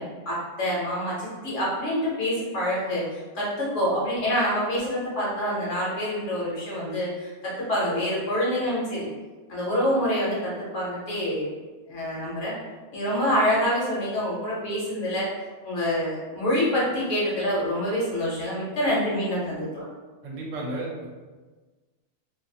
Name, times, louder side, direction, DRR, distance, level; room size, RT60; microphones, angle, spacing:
voice 1, 0.0-9.1 9.5-11.5 11.9-12.5 12.9-15.3 15.6-19.8, equal, 65° left, -6 dB, 1.0 m, -26 dB
voice 2, 20.2-21.1, right 2 dB, 70° right, -2 dB, 0.9 m, -33 dB
2.5 x 2.4 x 2.6 m, 1.3 s
omnidirectional pair, 1.5 m